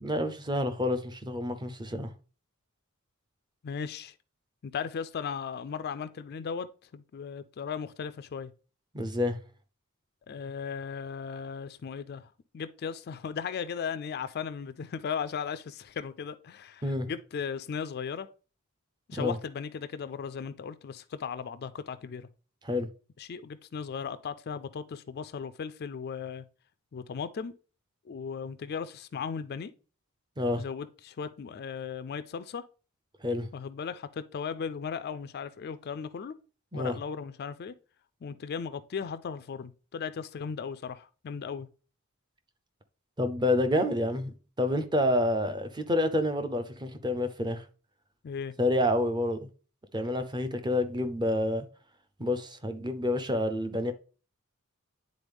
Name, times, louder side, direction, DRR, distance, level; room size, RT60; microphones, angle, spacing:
voice 1, 0.0-2.1 8.9-9.4 16.8-17.1 19.1-19.4 22.6-22.9 30.4-30.6 33.2-33.5 36.7-37.0 43.2-47.6 48.6-49.4 49.9-51.6 52.2-53.9, left 1 dB, 20° right, 0.6 m, -28 dB
voice 2, 3.6-4.1 4.6-6.7 6.9-8.5 10.3-18.3 19.1-22.3 23.2-26.4 26.9-27.5 28.1-29.7 30.6-32.6 33.5-36.3 36.7-37.7 38.2-41.7 48.2-48.5, left 6 dB, 45° left, 0.3 m, -37 dB
9.7 x 3.9 x 3.4 m
head